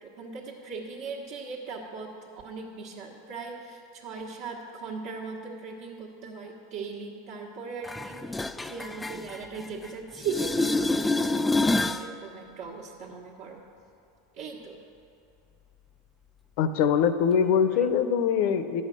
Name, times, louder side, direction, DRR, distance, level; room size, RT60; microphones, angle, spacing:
voice 1, 0.0-2.1 2.4-13.6 14.3-14.8, right 4 dB, 65° right, -6 dB, 1.3 m, -38 dB
sound 1, 7.8-9.9 10.2-12.1 17.8-17.9, left 2 dB, 10° left, 0.3 m, -27 dB
voice 2, 16.6-18.8, left 7 dB, 60° left, 11 dB, 0.7 m, -23 dB
11.5 x 5.6 x 7.6 m, 2.6 s
supercardioid pair, 120°, 0 cm